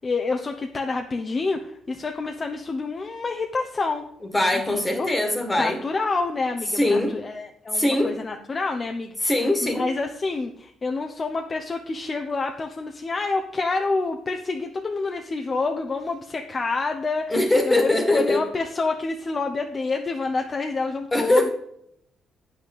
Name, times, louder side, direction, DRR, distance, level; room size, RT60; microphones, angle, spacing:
voice 1, 0.0-4.1 4.7-5.1 5.6-21.5, left 3 dB, 35° left, 4 dB, 0.8 m, -28 dB
voice 2, 4.3-5.8 6.7-7.2 7.7-8.1 9.2-9.9 17.3-18.4 21.1-21.5, left 1 dB, 15° left, 5 dB, 1.8 m, -21 dB
8.8 x 6.1 x 6.7 m, 0.72 s
cardioid pair, 90°, 0 cm